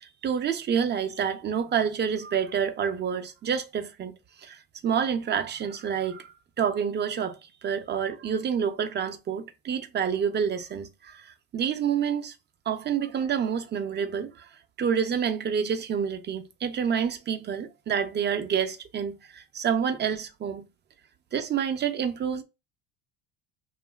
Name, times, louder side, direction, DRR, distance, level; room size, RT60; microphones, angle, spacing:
voice 1, 0.0-4.1 4.4-12.3 12.7-14.5 14.8-20.6 21.3-22.4, right 7 dB, 30° right, 0.5 m, -28 dB
2.9 x 2.4 x 2.2 m
supercardioid pair, 100°, 37 cm